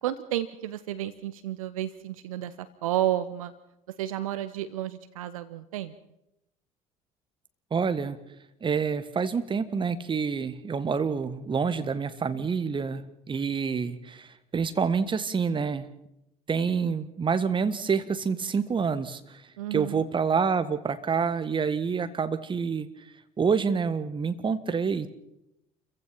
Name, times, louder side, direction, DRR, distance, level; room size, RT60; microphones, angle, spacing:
voice 1, 0.0-3.5 4.0-5.9 19.6-20.1, right 12 dB, 70° right, 14 dB, 0.9 m, -31 dB
voice 2, 7.7-8.2 8.6-15.9 16.5-19.4 19.7-22.9 23.4-25.1, right 5 dB, 25° right, 12 dB, 1.6 m, -27 dB
29.0 x 15.5 x 5.9 m, 0.85 s
figure-of-eight pair, 60°, 18 cm